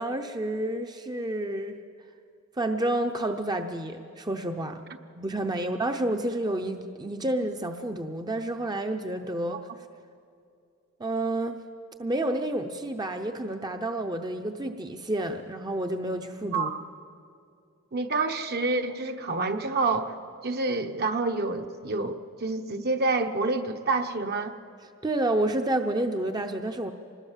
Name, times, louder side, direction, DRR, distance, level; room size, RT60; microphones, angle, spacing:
voice 1, 0.0-1.8 2.6-4.8 5.2-9.7 11.0-11.6 12.0-16.7 25.0-26.9, right 1 dB, 20° right, 5 dB, 0.7 m, -29 dB
voice 2, 17.9-20.1 20.4-24.5, right 3 dB, 50° right, 6 dB, 1.1 m, -28 dB
25.5 x 20.5 x 7.4 m, 2.4 s
head